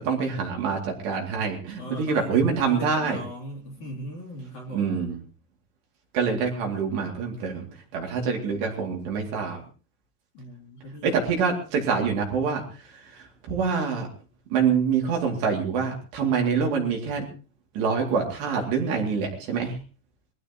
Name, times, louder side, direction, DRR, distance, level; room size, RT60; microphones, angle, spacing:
voice 1, 0.0-3.2 4.7-5.2 6.1-9.6 11.0-14.1 14.5-17.3 17.7-19.8, right 5 dB, 60° right, 1 dB, 4.5 m, -26 dB
voice 2, 1.8-2.3 2.7-5.0 10.3-11.2, equal, 45° left, 0 dB, 3.8 m, -39 dB
22.5 x 16.0 x 3.0 m, 0.34 s
omnidirectional pair, 5.6 m